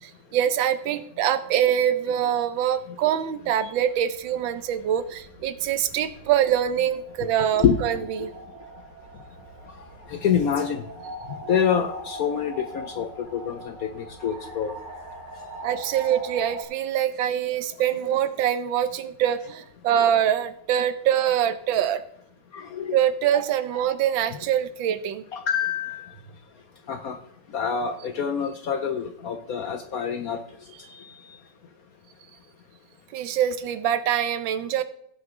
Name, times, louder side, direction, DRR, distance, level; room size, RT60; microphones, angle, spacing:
voice 1, 0.0-8.3 15.6-22.0 22.9-25.2 33.1-34.8, right 10 dB, 80° right, 12 dB, 1.5 m, -24 dB
sound 1, 3.4-16.6, right 1 dB, 45° right, 2.9 m, -42 dB
voice 2, 10.1-10.8 11.5-14.7 22.5-23.0 25.3-26.1 26.9-27.2 27.5-30.4, left 7 dB, 65° left, 7 dB, 0.9 m, -26 dB
17.5 x 6.3 x 3.7 m, 0.71 s
omnidirectional pair, 2.1 m